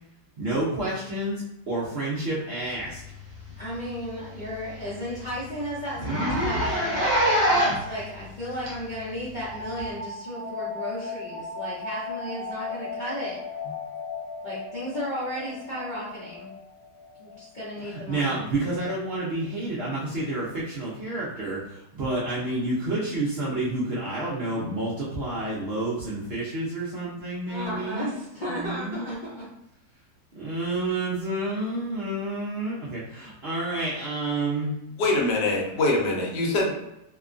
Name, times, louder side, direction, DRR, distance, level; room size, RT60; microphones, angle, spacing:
voice 1, 0.4-3.0 18.1-21.6 21.9-28.2 28.5-29.1 30.3-34.7, right 2 dB, 75° right, -7 dB, 0.5 m, -29 dB
Zipper (clothing), 3.3-3.5 3.9-4.0 4.3-4.4 4.8-4.9 5.1-5.3 5.9-7.9 8.7-8.8 9.8-9.9, equal, 50° right, 0.8 m, -24 dB
voice 2, 3.6-7.0 7.5-13.7 14.4-16.5 17.2-18.4 27.5-29.5, equal, 50° left, -10 dB, 0.5 m, -34 dB
sound 1, 9.5-18.9, left 4 dB, 30° right, 1.2 m, -37 dB
voice 3, 35.0-36.7, left 2 dB, 75° left, -1 dB, 1.2 m, -23 dB
2.9 x 2.2 x 2.4 m, 0.89 s
omnidirectional pair, 1.9 m